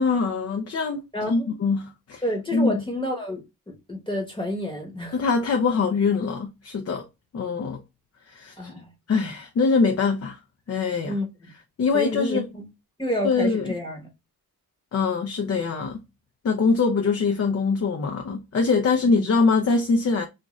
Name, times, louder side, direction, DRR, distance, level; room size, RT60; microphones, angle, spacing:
voice 1, 0.0-2.2 2.5-2.7 5.1-7.1 7.3-7.8 8.3-8.7 9.1-10.4 10.7-11.2 11.8-12.4 13.2-13.7 14.9-16.0 16.4-20.2, left 4 dB, 40° left, 0.5 m, -23 dB
voice 2, 1.1-1.4 2.2-5.2 8.6-8.9 11.0-11.3 11.9-12.6 13.0-14.1, left 1 dB, 15° left, 1.0 m, -29 dB
2.5 x 2.5 x 2.9 m
cardioid pair, 90°, 38 cm